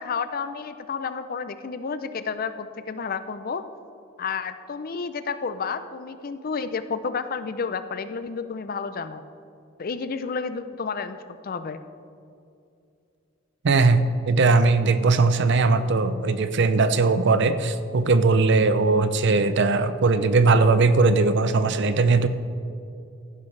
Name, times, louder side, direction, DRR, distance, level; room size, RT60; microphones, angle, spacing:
voice 1, 0.0-3.6 4.2-9.2 9.8-11.2 11.4-11.8, left 5 dB, 45° left, 11 dB, 0.5 m, -31 dB
voice 2, 13.6-22.3, right 3 dB, 60° right, 11 dB, 0.6 m, -19 dB
15.0 x 10.5 x 3.3 m, 2.5 s
head